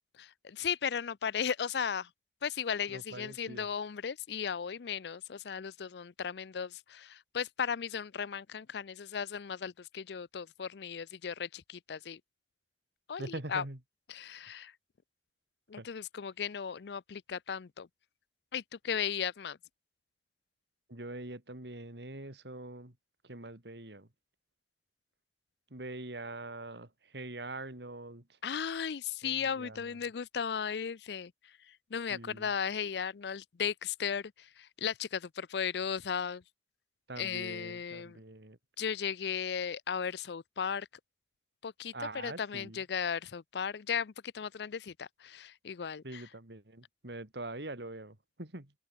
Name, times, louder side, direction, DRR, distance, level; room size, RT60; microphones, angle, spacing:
voice 1, 0.2-2.1 2.4-12.2 13.1-13.6 14.1-14.7 15.7-17.9 18.5-19.6 28.4-31.3 31.9-36.4 37.2-38.2 38.8-40.9 41.6-46.2, left 7 dB, 65° left, 0.5 m, -36 dB
voice 2, 2.9-3.7 13.2-13.8 15.8-15.9 20.9-22.9 23.2-24.1 25.7-28.4 29.2-30.0 32.1-32.5 37.1-38.6 41.9-42.8 46.0-48.7, right 2 dB, 70° right, 3.0 m, -44 dB
open air
head